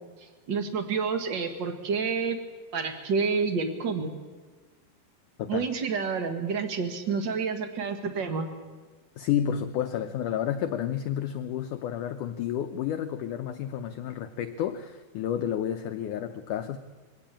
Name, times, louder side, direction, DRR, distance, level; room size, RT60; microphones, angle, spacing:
voice 1, 0.2-2.4 2.7-4.1 5.5-8.5, right 5 dB, 50° right, 7 dB, 1.3 m, -29 dB
voice 2, 9.2-16.8, left 10 dB, 80° left, 8 dB, 1.8 m, -30 dB
23.0 x 16.0 x 8.9 m, 1.4 s
omnidirectional pair, 4.6 m